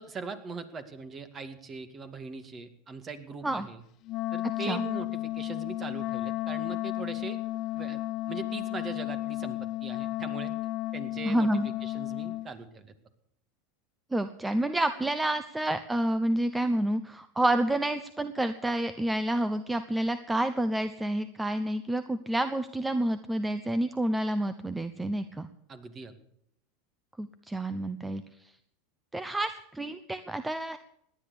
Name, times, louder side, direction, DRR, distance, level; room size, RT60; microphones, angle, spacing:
voice 1, 0.0-3.8 4.3-7.4 7.7-8.0 8.3-10.5 10.9-12.9 25.7-26.1, right 4 dB, 30° right, 10 dB, 2.2 m, -41 dB
Wind instrument woodwind instrument, 4.1-12.5, left 16 dB, 50° left, 0.6 m, -33 dB
voice 2, 11.2-11.7 14.1-25.5 27.2-28.2 29.1-30.8, right 1 dB, 10° right, 12 dB, 0.9 m, -29 dB
17.5 x 10.5 x 6.9 m, 0.74 s
hypercardioid pair, 100°, 0 cm